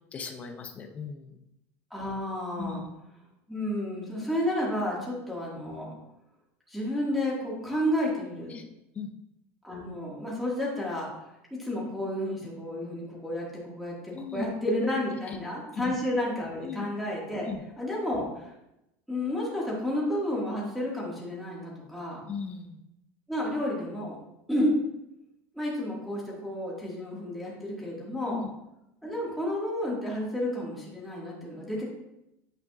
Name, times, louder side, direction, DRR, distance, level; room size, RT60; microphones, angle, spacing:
voice 1, 0.1-1.4 2.6-2.8 8.5-8.6 8.9-9.1 14.1-14.5 15.3-15.4 15.7-15.9 16.6-16.9 17.4-17.6 22.3-22.8 28.3-28.5, left 5 dB, 25° left, 5 dB, 0.6 m, -37 dB
voice 2, 1.9-2.8 3.5-5.9 6.7-8.6 9.6-11.1 11.5-17.5 17.8-18.5 19.1-22.2 23.3-24.2 24.5-24.7 25.5-28.4 29.0-31.8, left 1 dB, ahead, -5 dB, 1.8 m, -31 dB
9.1 x 5.1 x 2.4 m, 0.88 s
cardioid pair, 160°, 6 cm